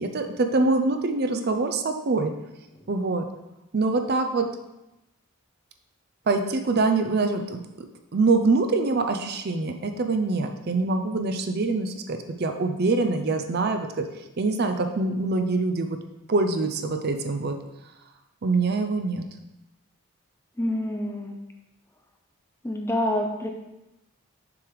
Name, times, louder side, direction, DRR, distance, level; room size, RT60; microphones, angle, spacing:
voice 1, 0.0-2.3 2.9-3.2 3.7-4.5 6.3-7.6 8.1-14.0 14.4-16.0 16.3-17.5 18.4-19.2, right 3 dB, 45° right, 6 dB, 0.5 m, -24 dB
voice 2, 20.6-21.4 22.6-23.5, left 1 dB, 10° left, 3 dB, 0.4 m, -27 dB
7.0 x 3.3 x 4.6 m, 0.94 s
head